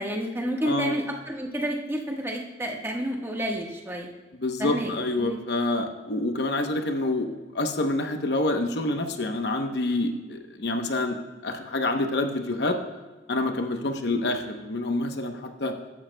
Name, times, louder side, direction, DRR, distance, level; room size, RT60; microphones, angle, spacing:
voice 1, 0.0-4.1 4.6-4.9 5.2-5.4, equal, 15° right, 0 dB, 1.3 m, -30 dB
voice 2, 0.6-0.9 4.4-11.2 11.4-12.8 13.3-15.7, left 2 dB, 65° left, 5 dB, 0.9 m, -27 dB
15.0 x 11.5 x 2.2 m, 1.3 s
head